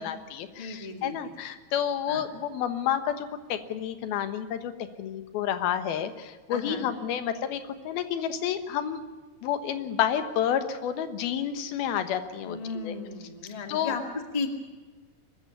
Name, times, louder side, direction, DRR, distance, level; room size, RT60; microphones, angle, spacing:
voice 1, 0.0-4.7 5.0-9.0 9.4-12.9 13.7-13.9, left 9 dB, 85° left, 10 dB, 3.1 m, -30 dB
voice 2, 0.6-1.3 2.1-2.2 6.5-6.9 12.4-14.5, left 4 dB, 15° left, 5 dB, 1.2 m, -35 dB
23.5 x 14.0 x 9.6 m, 1.3 s
omnidirectional pair, 4.3 m